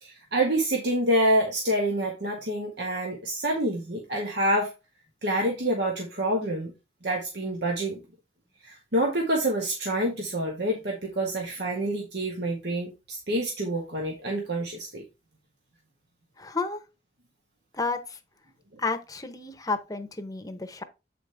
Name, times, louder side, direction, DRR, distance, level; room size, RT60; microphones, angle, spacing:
voice 1, 0.0-4.7 5.2-6.7 7.0-8.0 8.6-15.0, right 1 dB, 70° right, 1.6 m, -27 dB
voice 2, 16.4-16.8 17.7-18.2 18.8-20.8, left 3 dB, 20° left, 0.9 m, -31 dB
8.0 x 5.1 x 3.4 m
head